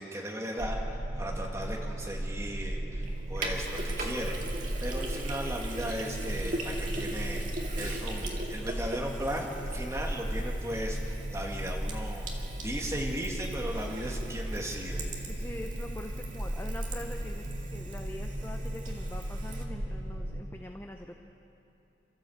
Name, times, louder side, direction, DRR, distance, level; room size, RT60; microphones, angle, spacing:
voice 1, 0.0-15.1, equal, 15° right, -1 dB, 2.2 m, -37 dB
sound 1, 0.6-20.4, right 1 dB, 90° right, 3.5 m, -36 dB
Sink (filling or washing), 3.0-19.6, right 2 dB, 45° right, 2.4 m, -41 dB
sound 2, 4.7-11.4, left 1 dB, 55° left, 5.3 m, -56 dB
voice 2, 15.3-21.2, left 1 dB, 15° left, 3 dB, 0.8 m, -43 dB
29.0 x 13.5 x 8.0 m, 2.9 s
head